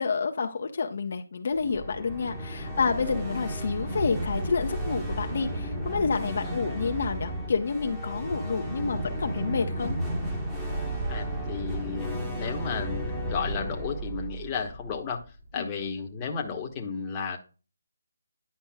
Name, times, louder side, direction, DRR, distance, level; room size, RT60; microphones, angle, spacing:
voice 1, 0.0-10.0 15.6-15.7, left 5 dB, 50° left, 5 dB, 0.7 m, -29 dB
sound 1, 1.5-15.6, right 1 dB, 10° right, 1.1 m, -33 dB
voice 2, 11.1-15.2 15.5-17.4, left 5 dB, 15° left, 1 dB, 1.0 m, -33 dB
10.0 x 5.2 x 2.2 m, 0.34 s
figure-of-eight pair, 165°, 0 cm